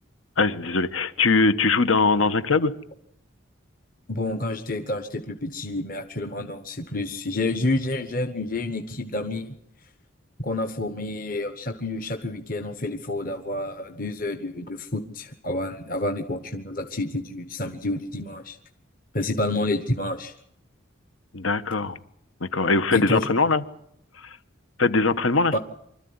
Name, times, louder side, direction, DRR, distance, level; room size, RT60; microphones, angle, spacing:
voice 1, 0.4-2.7 21.3-22.0 22.4-23.6 24.1-24.4 24.8-25.6, left 3 dB, 85° left, 12 dB, 1.3 m, -21 dB
voice 2, 4.1-9.5 10.4-18.6 19.1-20.3 22.9-23.3 25.5-25.6, left 2 dB, 45° left, 6 dB, 1.3 m, -29 dB
25.0 x 13.5 x 9.6 m, 0.75 s
head